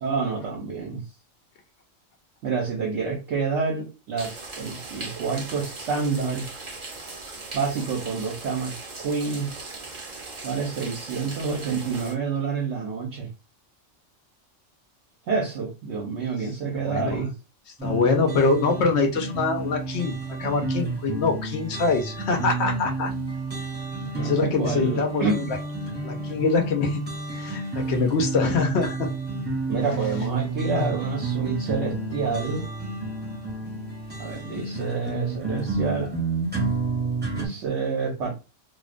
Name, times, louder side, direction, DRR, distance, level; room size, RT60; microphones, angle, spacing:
voice 1, 0.0-1.0 2.4-6.5 7.5-8.7 9.0-9.5 10.4-13.3 15.3-17.3 24.1-25.6 29.7-32.6 34.2-36.2 37.3-38.3, right 5 dB, 70° right, -1 dB, 0.9 m, -28 dB
sound 1, 4.2-12.1, right 3 dB, 45° right, 0.7 m, -39 dB
voice 2, 16.8-17.2 17.8-20.1 20.4-23.1 24.2-25.4 26.0-27.0 27.4-29.1 30.7-30.9, left 4 dB, 70° left, 2 dB, 0.8 m, -24 dB
sound 2, 17.8-37.5, right 3 dB, 10° right, 0.6 m, -30 dB
2.4 x 2.1 x 2.4 m, 0.30 s
omnidirectional pair, 1.3 m